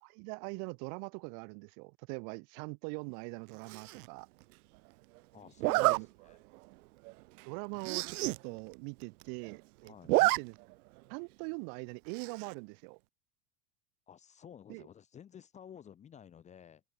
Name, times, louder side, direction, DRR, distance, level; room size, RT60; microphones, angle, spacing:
voice 1, 0.0-4.3 5.8-6.1 7.4-8.2 8.4-10.5 11.1-13.0 14.7-14.8, right 40 dB or more, 40° right, 2.4 m, -42 dB
Zipper (clothing), 3.7-4.1 5.6-6.0 6.6-6.7 7.1-7.2 7.4-7.5 7.8-8.4 8.7-8.8 9.0-9.6 9.9-10.4 10.7-10.8 12.1-12.5, right 22 dB, 70° right, 0.5 m, -29 dB
voice 2, 5.3-6.4 9.8-10.1 14.1-16.8, left 8 dB, 15° left, 1.7 m, -53 dB
open air
supercardioid pair, 180°, 47 cm